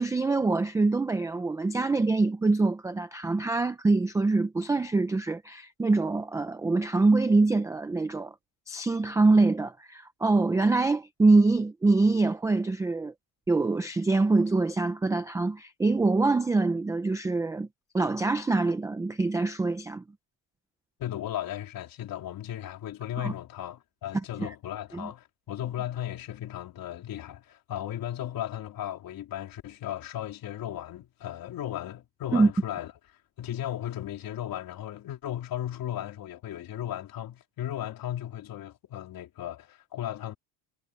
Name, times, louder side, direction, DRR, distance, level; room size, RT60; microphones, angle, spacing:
voice 1, 0.0-8.3 8.7-13.1 13.5-17.7 17.9-20.0 23.2-23.3 24.4-24.5 24.9-25.1 32.3-32.5, right 3 dB, 5° right, 0.4 m, -24 dB
voice 2, 21.0-32.9 33.4-40.4, left 11 dB, 45° left, 3.7 m, -36 dB
cardioid pair, 165°, 50 cm